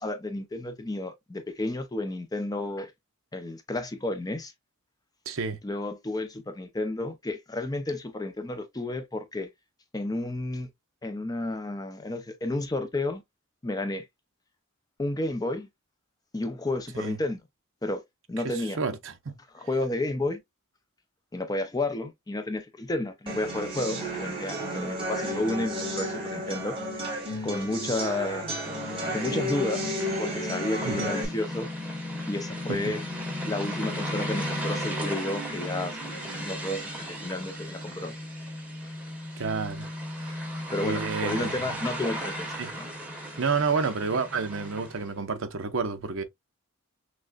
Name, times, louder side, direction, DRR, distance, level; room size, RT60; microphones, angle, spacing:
voice 1, 0.0-2.9 3.3-4.5 5.6-9.5 9.9-10.7 11.0-13.2 13.6-14.1 15.0-15.7 16.3-17.4 17.8-18.0 18.3-18.8 19.5-20.4 21.3-26.8 27.4-28.5 29.1-31.7 32.3-33.0 33.4-38.1 40.2-40.4 40.7-42.5 42.8-42.9, left 2 dB, 15° left, 0.4 m, -31 dB
voice 2, 5.3-5.6 16.9-17.2 18.4-19.4 30.8-31.1 32.7-32.9 39.4-39.9 40.2-40.4 40.8-41.5 42.6-42.7 43.4-46.2, right 5 dB, 65° right, 0.7 m, -30 dB
sound 1, 23.3-31.2, equal, 25° right, 1.4 m, -32 dB
sound 2, 28.6-45.1, equal, 5° right, 1.2 m, -35 dB
6.2 x 2.1 x 2.3 m
head